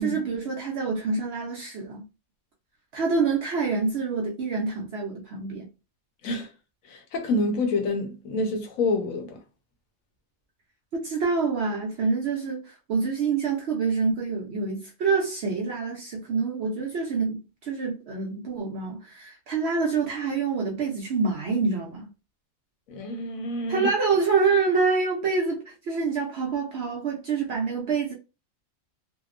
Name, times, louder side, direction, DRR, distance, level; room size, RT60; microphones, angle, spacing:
voice 1, 0.0-2.0 2.9-5.7 10.9-22.1 23.7-28.1, right 4 dB, 65° right, 0.7 m, -26 dB
voice 2, 6.9-9.4 22.9-23.9, left 2 dB, 75° left, 1.0 m, -27 dB
2.8 x 2.0 x 2.4 m
omnidirectional pair, 1.5 m